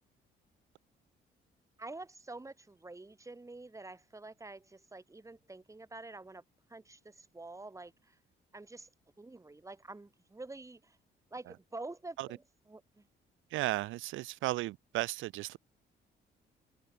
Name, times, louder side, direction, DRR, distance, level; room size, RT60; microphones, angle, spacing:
voice 1, 1.8-6.4 6.7-8.2 8.5-8.9 9.2-11.0 11.3-12.4 12.7-13.1, right 2 dB, 15° right, 1.7 m, -47 dB
voice 2, 13.5-15.6, right 17 dB, 80° right, 0.4 m, -34 dB
cardioid pair, 90°, 20 cm